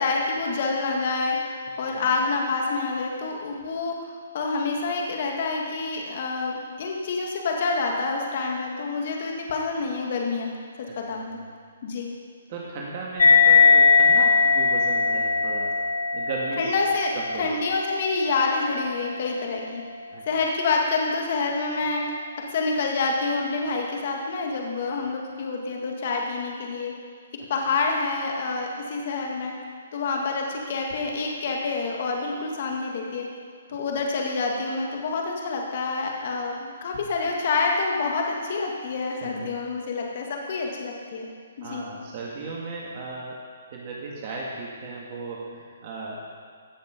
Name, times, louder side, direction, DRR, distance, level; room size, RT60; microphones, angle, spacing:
voice 1, 0.0-3.9 4.3-10.5 11.0-11.4 11.8-12.1 16.6-17.1 17.4-19.8 20.3-22.0 22.5-26.9 27.5-29.5 29.9-33.3 33.7-41.3 41.6-41.8, left 3 dB, 50° left, 0 dB, 2.0 m, -27 dB
voice 2, 12.5-15.7 16.1-16.7 17.1-17.5 20.1-20.2 39.2-39.5 41.6-43.4 43.7-46.2, right 3 dB, 40° right, -4 dB, 2.0 m, -36 dB
sound 1, 13.2-20.1, left 5 dB, 80° left, 1.2 m, -21 dB
15.5 x 6.8 x 5.2 m, 2.1 s
hypercardioid pair, 150°, 0 cm